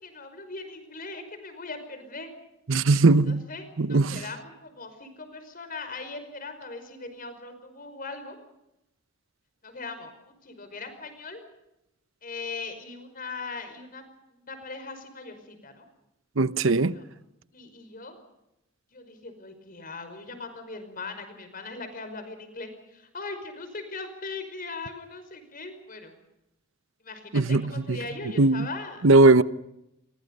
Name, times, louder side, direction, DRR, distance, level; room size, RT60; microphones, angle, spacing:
voice 1, 0.0-2.3 3.3-8.4 9.6-11.4 12.2-15.9 16.8-17.1 17.5-18.2 18.9-26.1 27.0-29.0, left 3 dB, 45° left, 5.4 m, -40 dB
voice 2, 2.7-3.4 3.8-4.2 16.4-17.0 27.3-28.0 28.4-28.7 29.0-29.4, right 3 dB, 85° right, 0.9 m, -19 dB
28.0 x 24.0 x 5.5 m
head